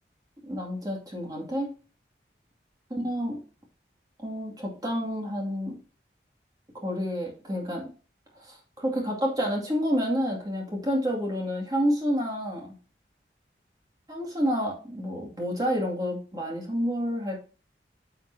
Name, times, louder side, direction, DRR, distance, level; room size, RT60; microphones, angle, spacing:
voice 1, 0.4-1.7 2.9-3.4 4.2-5.8 6.7-7.8 8.3-12.7 14.1-17.4, equal, 20° right, -1 dB, 2.4 m, -29 dB
9.9 x 5.8 x 2.8 m, 0.36 s
head